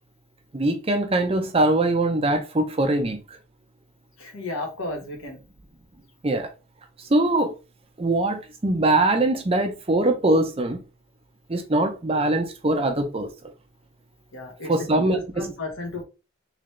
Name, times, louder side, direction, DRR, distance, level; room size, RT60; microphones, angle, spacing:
voice 1, 0.5-3.2 6.2-6.5 7.1-7.5 8.0-10.8 11.5-13.3 14.7-15.4, right 2 dB, 30° right, 0.6 m, -22 dB
voice 2, 4.2-5.4 14.3-16.0, left 2 dB, 75° left, 1.4 m, -33 dB
3.8 x 3.2 x 3.2 m
head